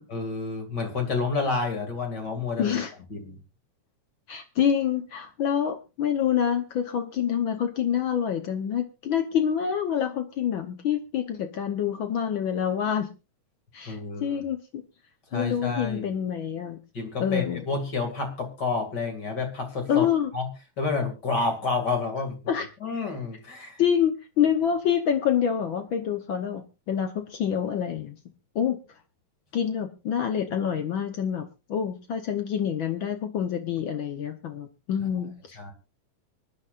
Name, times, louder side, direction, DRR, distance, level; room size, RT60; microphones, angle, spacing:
voice 1, 0.1-2.8 3.1-3.4 13.9-14.4 15.3-16.1 16.9-20.5 20.8-22.4 22.8-23.8 35.0-35.1 35.6-35.7, left 4 dB, 35° left, 4 dB, 2.6 m, -29 dB
voice 2, 2.6-2.9 4.3-13.1 13.7-14.8 15.3-16.8 17.2-17.6 19.9-20.3 22.5-22.7 23.8-28.2 28.5-28.8 29.5-31.4 31.7-35.3, left 8 dB, 80° left, 7 dB, 1.1 m, -26 dB
25.0 x 10.5 x 2.5 m, 0.29 s
omnidirectional pair, 3.6 m